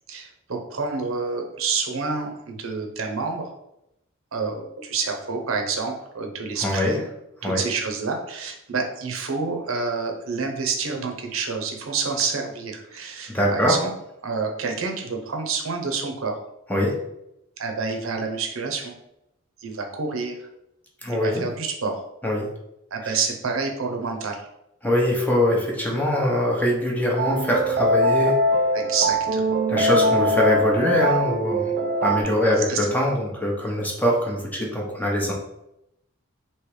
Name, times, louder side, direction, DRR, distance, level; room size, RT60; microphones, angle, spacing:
voice 1, 0.1-3.5 4.3-7.1 7.4-13.9 14.2-16.4 17.6-18.9 19.6-20.5 21.1-22.0 22.9-24.4 28.7-29.5 32.6-32.9, right 4 dB, 75° right, 3 dB, 0.7 m, -28 dB
voice 2, 6.6-7.0 7.4-7.6 13.3-13.8 16.7-16.9 21.0-21.4 22.2-22.5 24.8-28.4 29.7-31.7 32.0-35.3, left 1 dB, 10° left, -2 dB, 0.7 m, -22 dB
sound 1, 27.2-32.2, equal, 45° right, 0.4 m, -22 dB
3.2 x 2.9 x 4.7 m, 0.84 s
head